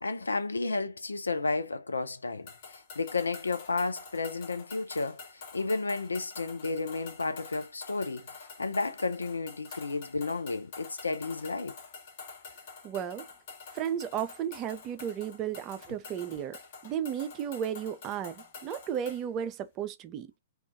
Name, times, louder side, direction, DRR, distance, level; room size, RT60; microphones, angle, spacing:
voice 1, 0.0-11.7, left 3 dB, 75° left, 0.4 m, -32 dB
sound 1, 2.5-19.3, left 5 dB, 45° left, 0.8 m, -48 dB
voice 2, 12.8-13.2 13.7-20.3, right 9 dB, 25° right, 0.3 m, -34 dB
2.3 x 2.2 x 2.5 m
figure-of-eight pair, 115°, 0 cm